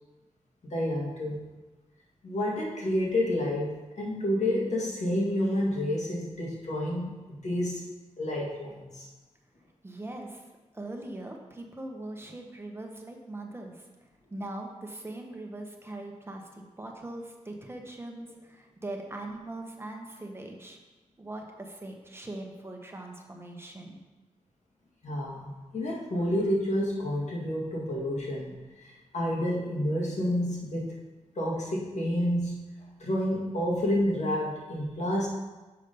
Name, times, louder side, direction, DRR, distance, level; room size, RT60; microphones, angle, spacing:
voice 1, 0.7-1.4 2.2-7.9 8.2-9.1 25.0-30.9 31.4-32.6 33.0-35.3, left 1 dB, 70° left, -3 dB, 1.9 m, -29 dB
voice 2, 9.8-10.4 10.7-13.9 14.3-20.8 21.2-24.0, right 2 dB, 20° right, 1 dB, 1.0 m, -41 dB
6.8 x 5.1 x 5.3 m, 1.2 s
wide cardioid pair, 105°, 12 cm